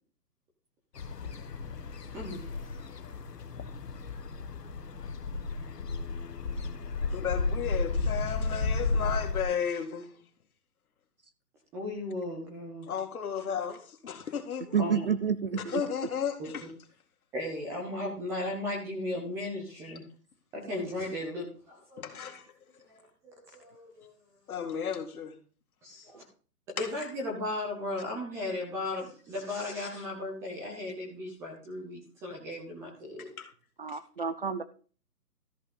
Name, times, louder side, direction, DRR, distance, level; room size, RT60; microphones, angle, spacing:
sound 1, 1.0-9.4, left 3 dB, 85° left, 1.5 m, -33 dB
voice 1, 2.1-2.8 11.7-12.9 14.7-15.1 16.4-16.7 17.3-20.0 20.5-22.3 22.9-24.1 25.8-26.2 26.8-33.3, left 1 dB, 5° right, 0.8 m, -36 dB
voice 2, 7.1-10.2 12.9-14.8 15.7-16.6 19.8-19.9 22.0-22.5 24.5-25.4 26.8-26.9 33.2-33.5 33.9-34.0, left 7 dB, 65° left, 2.3 m, -34 dB
voice 3, 14.7-15.8 33.8-34.6, right 6 dB, 40° right, 0.5 m, -29 dB
13.5 x 5.6 x 5.4 m
hypercardioid pair, 155°, 47 cm